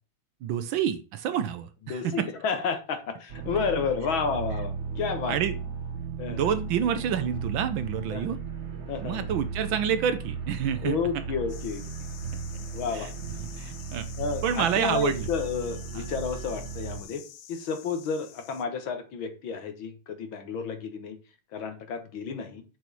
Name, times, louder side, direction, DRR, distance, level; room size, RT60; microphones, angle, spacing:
voice 1, 0.4-2.3 5.3-5.5 6.3-8.4 9.0-11.0 12.9-13.1 13.6-14.1 14.4-15.3 15.9-16.0, right 8 dB, 70° right, 11 dB, 1.4 m, -28 dB
voice 2, 1.9-5.4 6.2-6.5 8.1-8.3 8.9-9.3 10.8-11.8 12.7-13.1 14.2-17.2 17.5-21.2 21.5-22.6, left 5 dB, 65° left, 7 dB, 2.0 m, -31 dB
sound 1, 3.3-17.0, right 6 dB, 50° right, 0.9 m, -36 dB
sound 2, 11.5-18.6, left 11 dB, 85° left, 1.7 m, -48 dB
6.9 x 4.7 x 6.0 m, 0.34 s
omnidirectional pair, 2.4 m